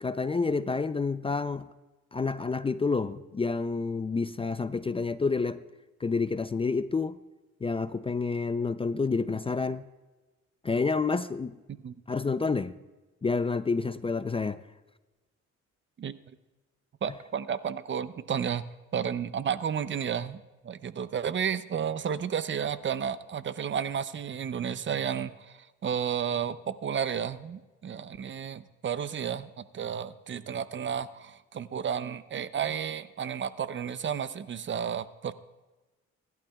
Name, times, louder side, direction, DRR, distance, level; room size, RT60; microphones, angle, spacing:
voice 1, 0.0-1.6 2.1-5.6 6.0-7.2 7.6-9.9 10.6-11.6 12.1-12.8 13.2-14.6, left 4 dB, 20° left, 0.4 m, -29 dB
voice 2, 17.0-18.6 18.9-35.3, right 8 dB, 40° right, 0.6 m, -32 dB
24.5 x 11.5 x 2.3 m
cardioid pair, 90°, 30 cm